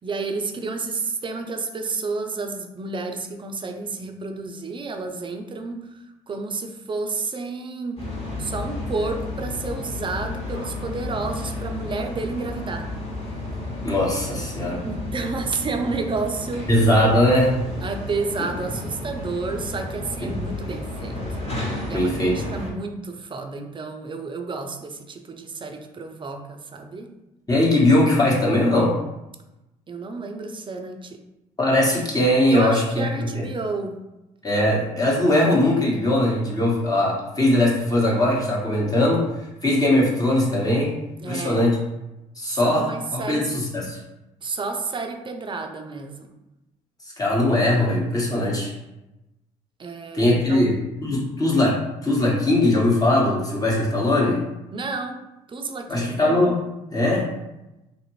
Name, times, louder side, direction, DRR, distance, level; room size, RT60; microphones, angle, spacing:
voice 1, 0.0-8.1 8.4-12.9 14.9-16.7 17.8-21.2 21.9-27.1 29.9-31.2 32.5-34.0 41.2-41.7 42.4-43.5 44.4-46.3 49.8-50.7 54.7-55.2 55.5-56.2, right 3 dB, 30° right, 5 dB, 0.5 m, -30 dB
sound 1, 8.0-22.7, left 1 dB, 35° left, 1.3 m, -32 dB
voice 2, 13.8-14.8 16.7-17.5 21.9-22.4 27.5-29.0 31.6-33.1 33.3-33.4 34.4-39.3 39.6-40.9 41.3-41.8 42.4-42.8 43.1-44.0 47.0-48.7 50.1-54.4 55.9-56.6 56.9-57.3, left 1 dB, 20° left, -4 dB, 1.1 m, -20 dB
2.6 x 2.4 x 3.1 m, 0.95 s
hypercardioid pair, 55°, 17 cm